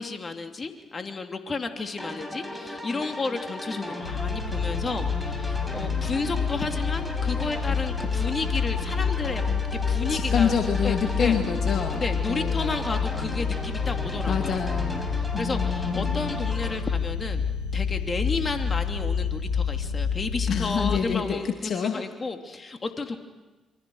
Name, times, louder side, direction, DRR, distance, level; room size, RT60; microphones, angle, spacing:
voice 1, 0.0-9.4 9.7-10.5 10.8-11.4 11.9-14.6 15.4-17.4 17.7-23.2, left 3 dB, 40° left, 5 dB, 2.9 m, -32 dB
sound 1, 2.0-16.7, left 1 dB, 5° left, 7.2 m, -37 dB
sound 2, 4.0-21.0, left 6 dB, 90° left, 2.3 m, -28 dB
voice 2, 10.1-12.0 12.3-12.8 14.3-16.1 20.5-22.0, left 7 dB, 60° left, 4 dB, 2.1 m, -27 dB
28.0 x 24.0 x 6.4 m, 1.1 s
hypercardioid pair, 50°, 0 cm